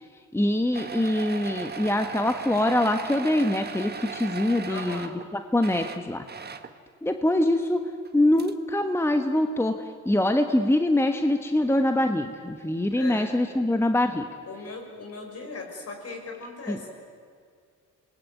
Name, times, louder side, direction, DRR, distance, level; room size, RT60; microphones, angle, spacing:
voice 1, 0.3-6.2 7.0-7.8 8.1-9.8 10.0-14.3 16.7-16.8, left 1 dB, 10° left, 6 dB, 1.3 m, -24 dB
sound 1, 0.7-5.3 5.6-6.8 8.1-8.2 8.4-8.5, right 6 dB, 35° right, 1.4 m, -37 dB
voice 2, 4.7-5.1 13.0-13.3 14.4-16.9, left 3 dB, 55° left, 3 dB, 6.4 m, -38 dB
26.5 x 20.0 x 9.4 m, 2.2 s
cardioid pair, 90°, 30 cm